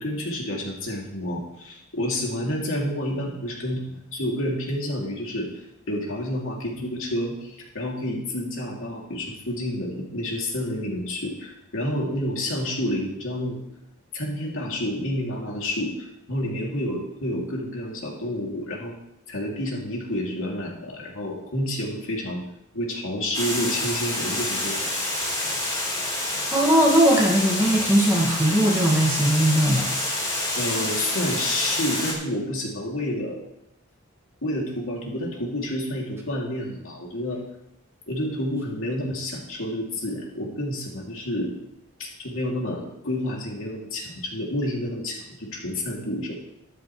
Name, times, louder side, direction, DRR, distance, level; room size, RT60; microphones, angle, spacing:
voice 1, 0.0-5.5 5.9-13.6 14.1-18.9 19.3-22.4 22.7-24.9 30.5-33.4 34.4-37.4 38.1-41.5 42.0-46.3, left 1 dB, 70° left, -2 dB, 2.9 m, -29 dB
Water, 23.3-32.1, left 1 dB, 20° left, 4.0 m, -27 dB
voice 2, 26.5-29.9, right 1 dB, 15° right, -2 dB, 2.0 m, -19 dB
13.0 x 12.0 x 3.3 m, 0.84 s
head